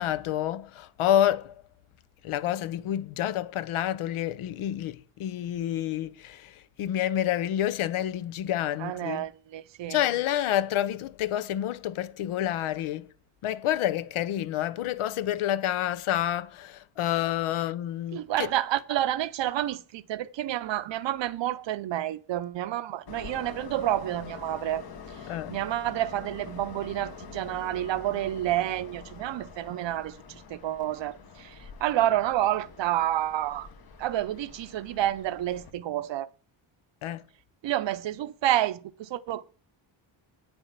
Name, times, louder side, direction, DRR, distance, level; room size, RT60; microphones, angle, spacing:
voice 1, 0.0-1.6 2.2-9.3 9.9-13.1 13.4-18.5 25.3-25.6 37.0-37.2, left 11 dB, 80° left, 0.8 m, -28 dB
voice 2, 8.8-10.0 18.1-24.8 25.5-30.2 30.5-31.5 31.8-33.7 34.0-36.3 37.6-39.4, right 13 dB, 60° right, 0.7 m, -29 dB
Train, 23.1-35.7, left 5 dB, 45° left, 1.3 m, -45 dB
9.0 x 7.0 x 7.3 m
wide cardioid pair, 180°, 49 cm